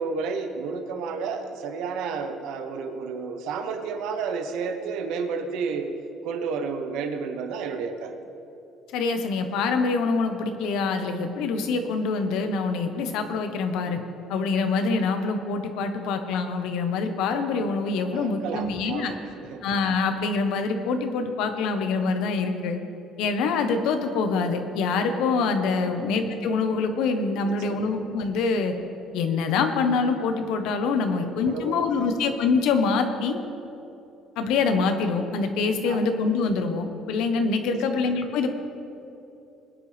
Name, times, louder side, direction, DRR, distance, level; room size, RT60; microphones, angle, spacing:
voice 1, 0.0-8.2 18.1-19.6 25.8-26.0 27.4-27.9 31.2-32.0 35.8-36.1 37.6-37.8, right 5 dB, 80° right, 6 dB, 1.0 m, -32 dB
voice 2, 8.9-14.0 14.3-19.1 19.6-22.8 23.2-28.7 29.1-33.4 34.4-38.5, left 4 dB, 80° left, 6 dB, 1.2 m, -25 dB
21.0 x 9.9 x 3.5 m, 2.9 s
cardioid pair, 145°, 0 cm